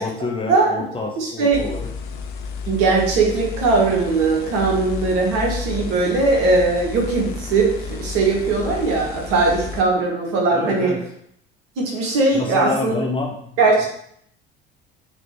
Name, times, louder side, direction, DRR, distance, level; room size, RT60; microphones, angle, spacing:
voice 1, 0.0-1.9 10.5-11.0 12.3-13.5, left 3 dB, 20° left, -1 dB, 0.7 m, -27 dB
voice 2, 1.2-1.6 2.7-7.7 8.0-10.9 11.8-13.1 13.6-13.9, right 3 dB, 50° right, -1 dB, 1.2 m, -19 dB
sound 1, 1.5-9.8, left 5 dB, 60° left, 0.5 m, -32 dB
4.1 x 3.0 x 3.0 m, 0.68 s
figure-of-eight pair, 60°, 29 cm